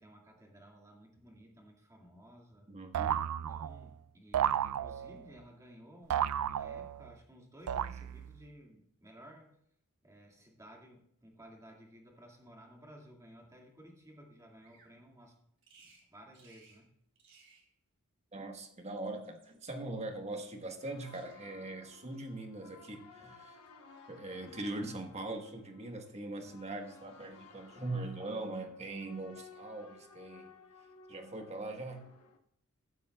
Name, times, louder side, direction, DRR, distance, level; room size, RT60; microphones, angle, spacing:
voice 1, 0.0-2.7 3.5-9.6 10.0-15.4 15.8-16.9, equal, 15° right, 2.0 m, -56 dB
voice 2, 2.7-3.2 18.3-23.6 24.1-30.5 31.1-32.1, right 2 dB, 30° right, 1.3 m, -41 dB
sound 1, 2.9-3.9 4.3-5.3 6.1-7.1 7.7-8.4, right 9 dB, 80° right, 0.4 m, -33 dB
Bird vocalization bird call bird song, 14.6-15.0 15.6-16.1 16.3-16.8 17.1-17.7 18.7-19.7 20.4-20.9 21.1-21.6 22.1-22.5, right 4 dB, 60° right, 3.5 m, -64 dB
sound 2, 20.8-32.4, left 4 dB, 90° left, 1.2 m, -57 dB
15.5 x 11.0 x 2.3 m
head